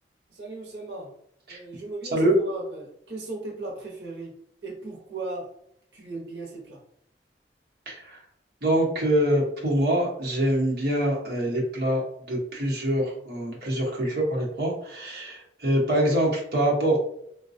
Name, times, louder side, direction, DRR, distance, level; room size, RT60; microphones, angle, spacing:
voice 1, 0.3-1.1 1.5-4.3 4.6-5.5 5.9-6.8, right 2 dB, 85° right, -1 dB, 0.8 m, -37 dB
voice 2, 7.9-8.2 8.6-12.0 12.3-17.0, right 1 dB, 60° right, -3 dB, 0.9 m, -24 dB
3.9 x 2.2 x 2.6 m, 0.72 s
head